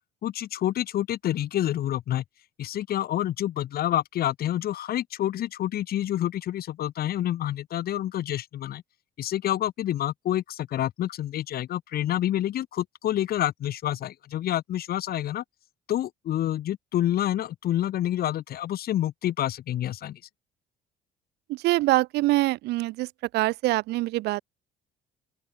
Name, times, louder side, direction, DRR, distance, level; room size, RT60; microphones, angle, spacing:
voice 1, 0.2-2.2 2.6-8.8 9.2-15.4 15.9-20.2, left 12 dB, 65° left, 4.3 m, -28 dB
voice 2, 21.5-23.1 23.3-24.4, right 19 dB, 80° right, 0.6 m, -24 dB
open air
cardioid pair, 110°, 17 cm